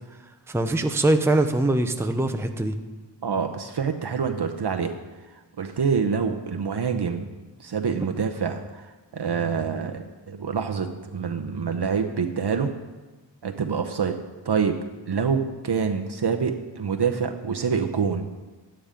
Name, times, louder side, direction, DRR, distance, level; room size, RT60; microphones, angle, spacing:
voice 1, 0.5-2.7, right 2 dB, 5° right, 6 dB, 0.7 m, -22 dB
voice 2, 3.2-4.9 5.6-7.3 7.6-8.8 9.1-12.7 13.4-14.2 14.4-14.8 15.1-18.3, right 6 dB, 60° right, 5 dB, 0.8 m, -26 dB
11.5 x 9.6 x 5.1 m, 1.2 s
wide cardioid pair, 70°, 44 cm